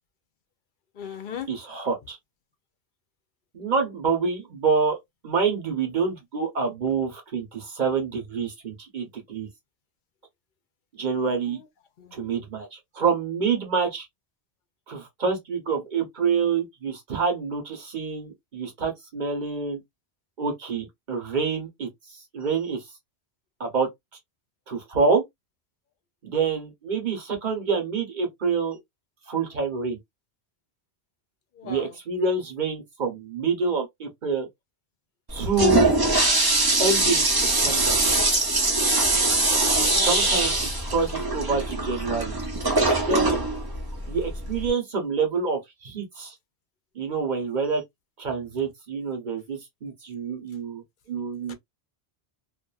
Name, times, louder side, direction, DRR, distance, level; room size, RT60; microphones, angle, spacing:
voice 1, 1.0-1.5 12.0-12.1 31.6-31.9 39.9-40.1 51.5-51.6, left 7 dB, 60° left, 0.7 m, -36 dB
voice 2, 1.5-2.2 3.5-5.0 5.2-9.5 11.0-11.6 12.1-14.1 14.9-19.8 20.4-21.9 22.3-22.8 23.6-23.9 24.7-25.2 26.2-28.8 29.3-30.0 31.6-34.5 35.3-35.9 36.8-37.3 37.6-38.0 40.0-42.4 42.9-43.4 44.1-46.3 46.9-47.8 48.2-50.8 51.1-51.5, right 4 dB, 50° right, 1.1 m, -27 dB
Toilet flush, 35.3-44.7, right 2 dB, 25° right, 0.7 m, -22 dB
2.5 x 2.4 x 2.3 m
omnidirectional pair, 1.1 m